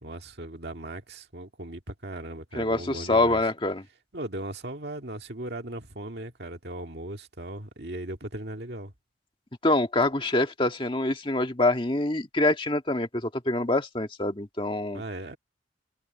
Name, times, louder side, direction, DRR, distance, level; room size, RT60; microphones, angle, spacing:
voice 1, 0.0-3.4 4.1-8.9 14.9-15.4, right 1 dB, 60° right, 2.1 m, -38 dB
voice 2, 2.5-3.8 9.6-15.0, left 2 dB, 25° left, 1.8 m, -25 dB
head